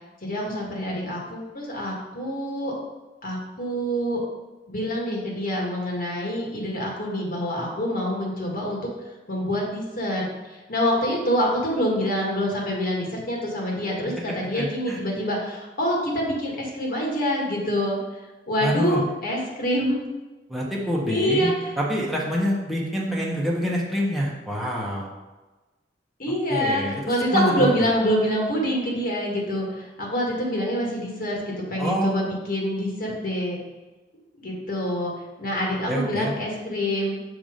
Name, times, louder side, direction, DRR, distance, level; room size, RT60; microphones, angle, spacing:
voice 1, 0.2-2.7 3.2-4.2 4.7-8.9 9.3-18.2 18.5-20.0 21.1-21.7 26.2-33.6 34.4-35.1 35.4-37.2, equal, 50° left, -2 dB, 1.9 m, -26 dB
voice 2, 14.5-15.0 18.6-19.0 20.5-25.1 26.5-27.7 31.8-32.1 35.9-36.3, equal, ahead, -4 dB, 1.3 m, -26 dB
6.9 x 4.8 x 5.2 m, 1.2 s
head